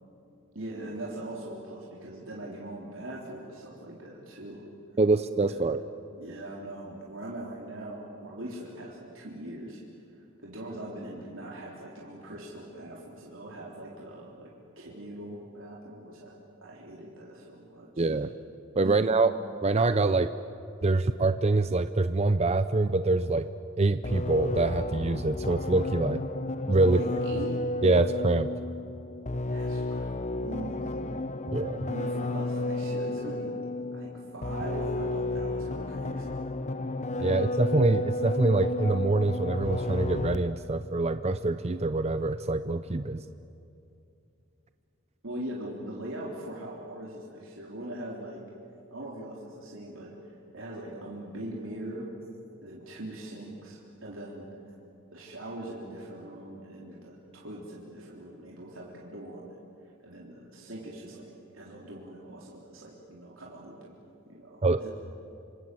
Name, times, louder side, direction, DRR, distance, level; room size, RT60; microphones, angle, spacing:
voice 1, 0.5-4.6 5.5-5.8 6.2-9.8 10.4-14.5 14.8-18.1 18.8-19.2 26.9-27.6 29.5-31.1 31.9-36.4 45.2-48.4 48.9-52.1 52.6-54.5 55.1-59.6 60.0-64.0 64.3-64.9, right 1 dB, 70° right, -4 dB, 3.8 m, -41 dB
voice 2, 5.0-5.8 18.0-18.3 18.8-19.3 19.6-20.3 20.8-23.5 23.8-26.2 26.7-27.0 27.8-28.5 31.5-31.9 37.2-43.2 64.6-64.8, right 2 dB, 30° right, 11 dB, 0.6 m, -25 dB
sound 1, 24.0-40.7, left 2 dB, 35° left, 0.8 m, -32 dB
27.0 x 26.5 x 7.8 m, 2.6 s
head